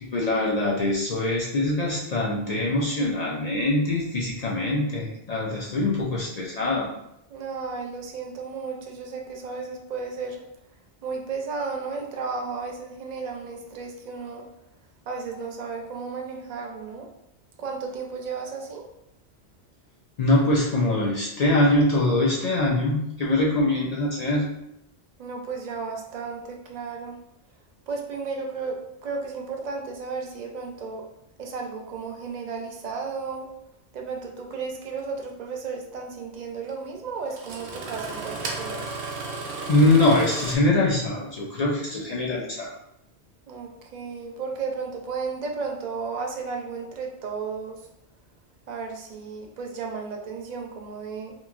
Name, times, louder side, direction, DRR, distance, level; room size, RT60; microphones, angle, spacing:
voice 1, 0.0-6.9 20.2-24.4 39.7-42.7, left 2 dB, 55° left, -4 dB, 0.4 m, -23 dB
voice 2, 7.3-10.4 11.0-14.4 15.1-17.1 17.6-18.8 25.2-27.2 27.9-31.1 31.4-33.5 33.9-38.8 43.5-47.8 48.7-51.3, right 4 dB, 55° right, 1 dB, 0.5 m, -34 dB
Engine starting, 35.0-35.1 36.7-36.8 37.3-40.6, right 3 dB, 80° right, 0.9 m, -34 dB
3.0 x 2.4 x 2.4 m, 0.81 s
omnidirectional pair, 1.1 m